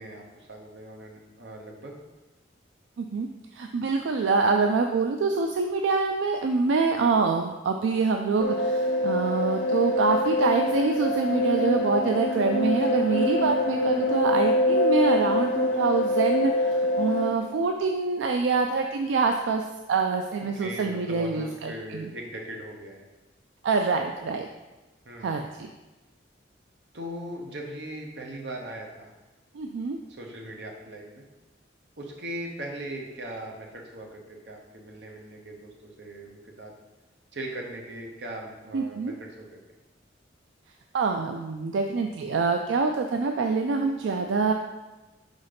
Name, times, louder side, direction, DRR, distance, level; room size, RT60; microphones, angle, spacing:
voice 1, 0.0-2.0 20.6-23.0 25.0-25.5 26.9-29.1 30.1-31.2 32.0-36.7 37.3-39.5, right 1 dB, 65° right, 0 dB, 1.0 m, -39 dB
voice 2, 3.0-3.3 3.6-22.1 23.6-24.5 25.2-25.7 29.6-30.0 38.7-39.1 40.9-44.5, right 4 dB, 85° right, 4 dB, 0.4 m, -25 dB
sound 1, 8.4-17.3, left 1 dB, 70° left, 1.0 m, -25 dB
4.8 x 4.1 x 5.1 m, 1.1 s
head